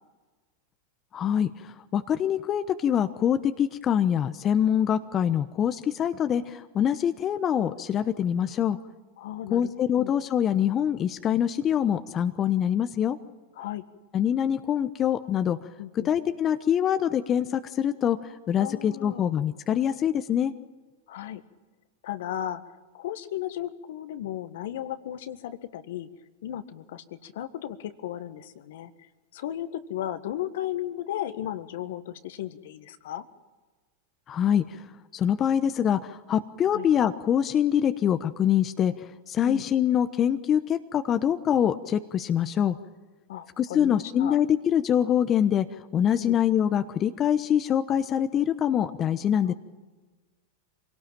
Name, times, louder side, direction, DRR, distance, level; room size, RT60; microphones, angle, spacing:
voice 1, 1.1-8.8 9.5-13.2 14.1-15.6 16.0-20.5 34.3-34.8 35.1-42.8 43.6-49.5, left 9 dB, 30° left, 10 dB, 1.0 m, -24 dB
voice 2, 9.2-10.1 13.6-13.8 15.8-16.1 18.6-19.3 21.1-21.4 22.0-26.1 26.4-33.2 36.7-36.8 39.4-39.9 43.3-44.4 46.2-46.4 49.5-49.6, left 12 dB, 65° left, 11 dB, 1.6 m, -35 dB
25.5 x 18.0 x 9.0 m, 1.3 s
hypercardioid pair, 95°, 0 cm